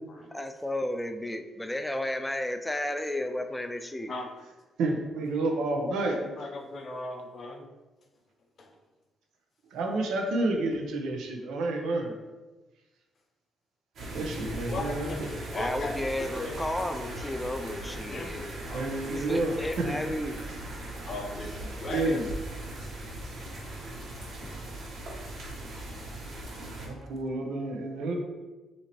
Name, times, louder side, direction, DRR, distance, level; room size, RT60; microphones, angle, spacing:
voice 1, 0.3-4.1 15.5-18.5 19.1-20.4, left 1 dB, 10° left, 7 dB, 0.4 m, -33 dB
voice 2, 4.8-6.2 9.7-12.1 14.1-15.1 18.7-19.9 21.9-22.2 26.8-28.2, right 2 dB, 80° right, 2 dB, 0.8 m, -29 dB
voice 3, 6.2-7.7 8.6-8.7 14.7-17.3 18.1-19.0 21.0-22.2 24.4-24.5 24.8-24.9, left 2 dB, 45° left, 3 dB, 0.7 m, -38 dB
sound 1, 14.0-26.9, right 1 dB, 65° right, 1.3 m, -39 dB
5.8 x 2.8 x 3.0 m, 1.2 s
cardioid pair, 90°, 0 cm